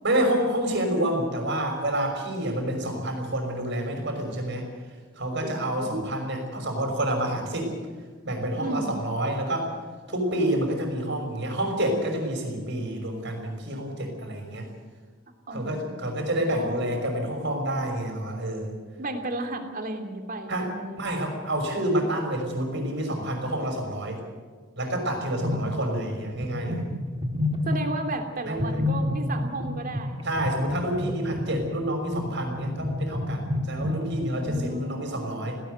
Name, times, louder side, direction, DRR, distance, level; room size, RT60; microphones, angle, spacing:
voice 1, 0.0-4.7 5.2-7.7 8.2-9.7 10.1-14.7 15.5-18.7 20.5-20.7 21.0-24.2 24.8-26.8 28.4-28.8 30.2-35.6, right 1 dB, 60° right, 4 dB, 5.8 m, -28 dB
voice 2, 5.4-6.1 8.6-9.0 15.5-16.8 19.0-21.1 27.7-30.1 34.4-35.4, right 2 dB, 45° right, 4 dB, 3.0 m, -34 dB
sound 1, 25.4-26.1 26.3-28.1 28.5-34.7, left 1 dB, 25° right, 2.0 m, -30 dB
18.0 x 18.0 x 8.1 m, 1.5 s
head